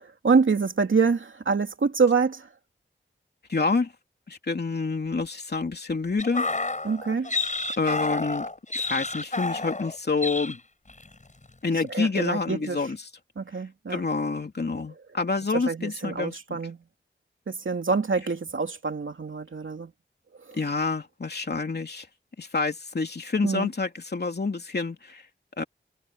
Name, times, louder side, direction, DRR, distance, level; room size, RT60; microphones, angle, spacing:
voice 1, 0.0-2.5 6.8-7.3 11.9-12.8 13.4-14.0 15.5-16.8 17.5-19.9 20.5-20.6 23.4-23.7, right 5 dB, 75° right, 2.8 m, -26 dB
voice 2, 3.5-3.9 4.3-6.5 7.8-8.5 8.7-10.6 11.6-13.0 13.9-16.6 20.5-22.1 22.4-25.2 25.6-25.7, left 4 dB, 55° left, 2.9 m, -28 dB
sound 1, 6.2-10.0 10.2-10.6 10.9-11.1, left 3 dB, 35° left, 7.3 m, -30 dB
wide cardioid pair, 90°, 21 cm